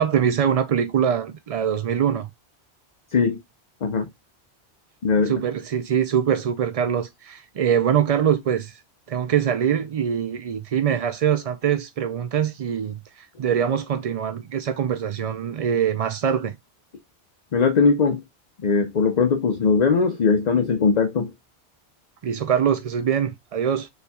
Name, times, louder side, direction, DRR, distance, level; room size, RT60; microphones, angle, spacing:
voice 1, 0.0-2.3 5.3-8.8 9.1-16.6 22.2-23.9, right 8 dB, 60° right, 0.4 m, -23 dB
voice 2, 5.0-5.4 17.5-18.2 18.6-21.3, left 5 dB, 45° left, 0.7 m, -20 dB
6.9 x 3.3 x 2.3 m
omnidirectional pair, 1.1 m